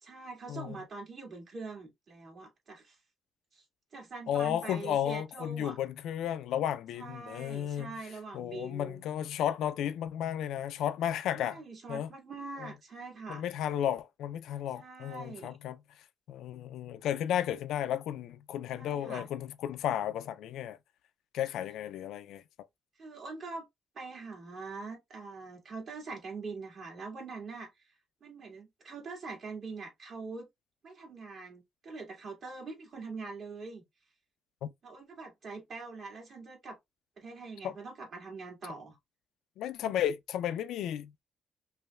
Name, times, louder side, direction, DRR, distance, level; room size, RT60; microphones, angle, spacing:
voice 1, 0.0-3.0 3.5-3.6 3.9-5.8 6.9-9.0 11.3-13.5 14.8-15.6 18.8-19.3 23.0-23.7 24.0-27.9 28.2-30.5 30.8-33.8 34.8-36.8 37.2-39.0, right 3 dB, 50° right, 1.8 m, -43 dB
voice 2, 4.3-7.9 8.3-11.6 11.9-12.1 12.6-12.7 13.3-15.8 16.3-20.8 21.3-22.4 34.6-34.7 37.6-37.7 39.6-41.2, left 10 dB, 85° left, 0.3 m, -33 dB
5.3 x 2.1 x 2.2 m
cardioid pair, 90°, 0 cm